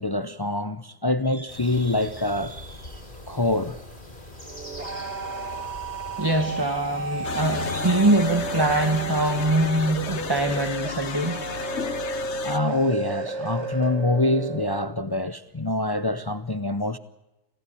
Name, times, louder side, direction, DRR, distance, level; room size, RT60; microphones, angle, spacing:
voice 1, 0.0-3.0 3.3-3.8 12.4-17.0, left 1 dB, 25° left, 0.7 m, -25 dB
sound 1, 1.5-10.6, left 1 dB, 50° left, 5.3 m, -43 dB
sound 2, 4.4-14.8, right 3 dB, 90° right, 2.6 m, -33 dB
voice 2, 6.2-11.5, right 1 dB, 20° right, 1.5 m, -23 dB
sound 3, 7.2-12.6, left 7 dB, 85° left, 1.3 m, -34 dB
26.5 x 16.0 x 8.5 m
omnidirectional pair, 1.1 m